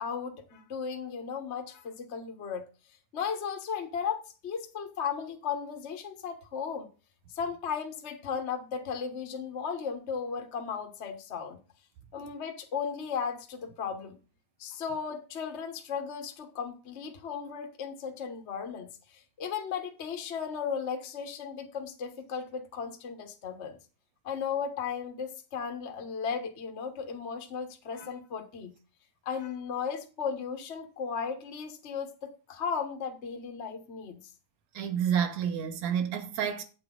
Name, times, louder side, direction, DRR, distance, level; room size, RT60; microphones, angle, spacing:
voice 1, 0.0-2.6 3.1-6.9 7.3-11.6 12.1-14.2 14.6-18.9 19.4-23.8 24.2-28.7 29.2-34.2, left 6 dB, 75° left, 0.6 m, -35 dB
voice 2, 34.7-36.6, right 8 dB, 75° right, 2.1 m, -29 dB
8.2 x 8.0 x 3.9 m
omnidirectional pair, 3.5 m